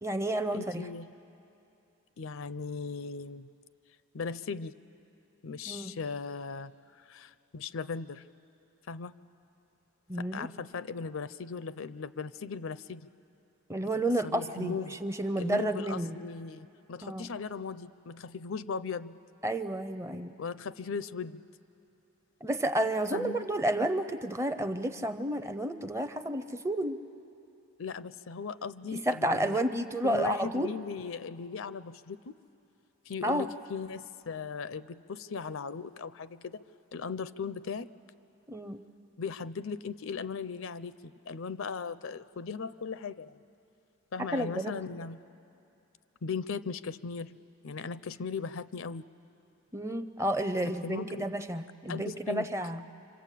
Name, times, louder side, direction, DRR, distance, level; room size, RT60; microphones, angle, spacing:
voice 1, 0.0-0.9 5.7-5.9 10.1-10.5 13.7-16.2 17.0-17.3 19.4-20.3 22.4-27.0 28.9-30.7 33.2-33.5 38.5-38.8 44.3-44.8 49.7-52.8, right 1 dB, 15° right, 10 dB, 0.6 m, -31 dB
voice 2, 0.5-1.1 2.2-3.5 4.1-4.8 5.4-8.2 8.9-9.1 10.2-13.1 14.2-14.9 15.4-19.2 20.4-21.4 23.1-23.5 27.8-29.6 30.0-32.4 33.1-36.6 36.9-37.9 39.2-43.3 44.1-45.3 46.2-47.4 47.6-49.1 50.6-51.3 51.9-52.5, left 5 dB, 65° left, 15 dB, 0.5 m, -38 dB
26.5 x 26.0 x 8.4 m, 2.8 s
head